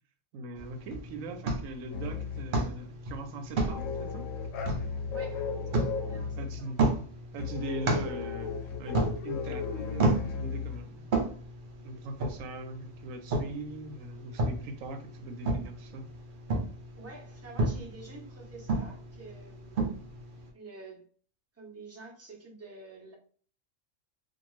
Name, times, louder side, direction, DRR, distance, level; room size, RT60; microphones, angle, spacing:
voice 1, 0.3-4.3 6.4-6.8 7.3-11.2 11.8-16.1, right 2 dB, 85° right, 7 dB, 1.0 m, -41 dB
sound 1, 0.6-20.5, right 2 dB, 55° right, 0.6 m, -34 dB
sound 2, 1.9-2.5 3.5-6.6 7.4-10.8, left 6 dB, 85° left, 1.0 m, -36 dB
voice 2, 5.1-5.5 6.1-6.8 16.9-20.0 20.5-21.0 21.5-23.1, right 3 dB, 15° right, -2 dB, 0.6 m, -48 dB
2.6 x 2.3 x 3.0 m, 0.43 s
omnidirectional pair, 1.3 m